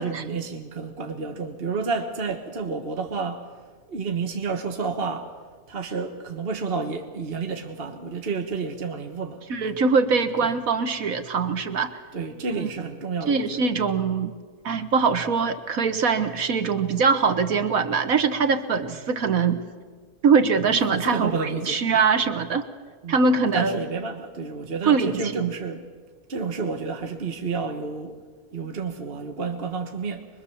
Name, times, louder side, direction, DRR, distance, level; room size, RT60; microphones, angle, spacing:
voice 1, 0.0-3.5 3.9-5.3 5.7-9.4 12.1-13.6 18.9-19.0 20.9-22.0 23.0-23.3 23.5-25.9 26.3-28.1 28.5-30.3, right 4 dB, 40° right, 1.6 m, -30 dB
voice 2, 9.5-12.0 12.6-12.7 13.2-14.3 14.6-19.6 20.2-22.7 23.1-23.8 24.8-25.5, right 5 dB, 70° right, 1.6 m, -22 dB
25.0 x 22.5 x 7.2 m
omnidirectional pair, 1.6 m